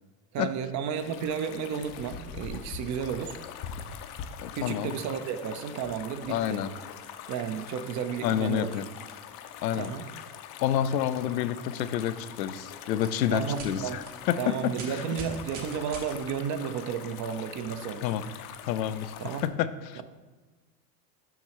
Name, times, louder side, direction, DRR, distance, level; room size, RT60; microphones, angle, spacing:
voice 1, 0.3-3.4 4.5-6.6 7.3-8.8 9.7-10.1 13.3-14.0 14.4-18.1 19.2-19.4 20.0-20.1, right 7 dB, 35° right, 9 dB, 0.6 m, -33 dB
sound 1, 0.9-19.5, left 8 dB, 45° left, 0.6 m, -43 dB
voice 2, 4.4-4.9 6.3-6.7 8.2-8.9 9.6-9.9 10.6-14.6 14.9-15.1 18.0-18.2 18.7-19.1 19.4-20.0, left 10 dB, 90° left, 12 dB, 0.6 m, -29 dB
sound 2, 12.9-13.1 13.5-13.7 14.0-14.1 14.7-16.1 17.3-17.4 18.2-18.3, right 4 dB, 60° right, 1.6 m, -41 dB
7.1 x 5.5 x 3.0 m, 1.3 s
hypercardioid pair, 95°, 49 cm